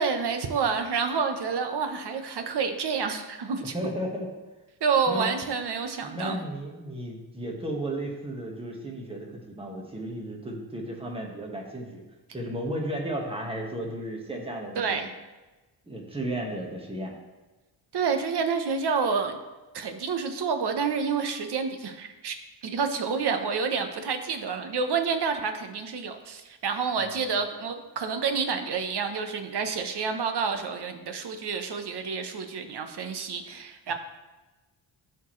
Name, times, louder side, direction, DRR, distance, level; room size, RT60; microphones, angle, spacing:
voice 1, 0.0-3.7 4.8-6.4 14.8-15.1 17.9-19.4 19.7-22.3 22.6-33.9, right 5 dB, 60° right, 7 dB, 1.0 m, -28 dB
voice 2, 3.6-4.3 5.1-5.3 6.0-12.0 12.3-15.1 15.9-17.1 27.0-27.3, right 1 dB, 10° right, -1 dB, 1.5 m, -34 dB
13.5 x 4.5 x 3.2 m, 1.2 s
cardioid pair, 115°, 46 cm